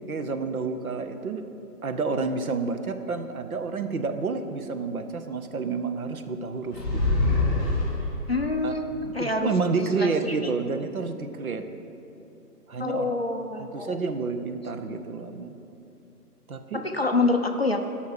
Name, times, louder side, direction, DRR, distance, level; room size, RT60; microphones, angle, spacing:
voice 1, 0.1-1.5 1.8-7.2 8.6-11.6 12.7-13.2 13.6-15.5 16.5-16.8, right 4 dB, 60° right, 8 dB, 0.9 m, -29 dB
sound 1, 6.7-8.4, left 2 dB, 5° right, 1.8 m, -24 dB
voice 2, 8.3-9.5 9.8-10.3 12.8-14.0 16.7-17.9, left 3 dB, 40° left, 4 dB, 0.5 m, -26 dB
13.0 x 5.6 x 6.5 m, 2.8 s
hypercardioid pair, 175°, 47 cm